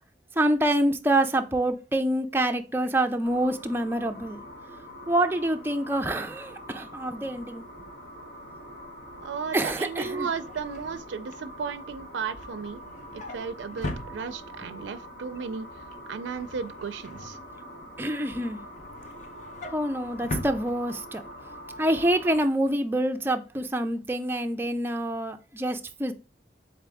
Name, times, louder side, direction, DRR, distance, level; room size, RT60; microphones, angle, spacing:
voice 1, 0.4-4.4 5.1-7.6 9.5-10.3 14.6-14.8 18.0-18.6 19.7-21.2 21.8-26.1, right 1 dB, 10° right, 0.4 m, -26 dB
sound 1, 3.2-22.4, equal, 85° left, 1.4 m, -44 dB
voice 2, 9.2-12.8 13.1-15.7 16.1-17.4, right 5 dB, 80° right, 0.4 m, -34 dB
Drawer open or close, 9.7-14.8 15.2-15.5 15.7-18.0 18.4-21.4 21.7-21.9 22.2-22.3, left 1 dB, 40° left, 0.7 m, -41 dB
3.7 x 3.5 x 3.4 m
head